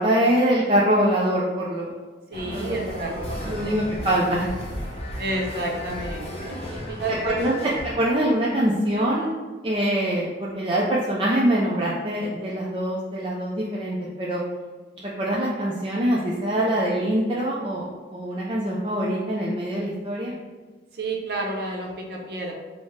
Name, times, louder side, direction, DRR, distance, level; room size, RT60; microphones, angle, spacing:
voice 1, 0.0-1.9 2.5-3.1 3.5-4.6 7.2-9.3 9.6-14.4 15.0-20.4, right 1 dB, 30° right, -5 dB, 0.4 m, -24 dB
sound 1, 2.3-8.0, left 1 dB, 35° left, 0.7 m, -34 dB
voice 2, 2.3-3.7 5.2-7.4 20.9-22.5, right 2 dB, 60° right, -1 dB, 0.7 m, -30 dB
5.0 x 2.1 x 3.2 m, 1.3 s
head